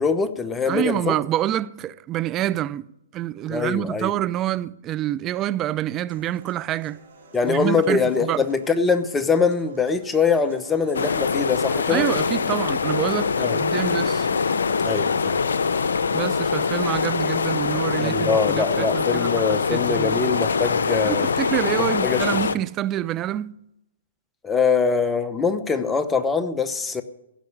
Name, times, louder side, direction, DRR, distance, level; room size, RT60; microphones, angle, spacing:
voice 1, 0.0-1.2 3.5-4.1 7.3-12.1 13.4-13.6 14.8-15.4 18.0-21.3 22.0-22.2 24.4-27.0, left 5 dB, 10° left, 0.9 m, -23 dB
voice 2, 0.7-2.9 3.1-7.0 7.4-8.5 11.9-14.3 16.1-20.2 21.1-23.6, right 13 dB, 25° right, 0.5 m, -27 dB
sound 1, 6.1-22.1, right 3 dB, 65° right, 4.4 m, -51 dB
sound 2, 10.9-22.6, left 5 dB, 75° left, 0.7 m, -23 dB
16.0 x 6.4 x 9.3 m
hypercardioid pair, 130°, 0 cm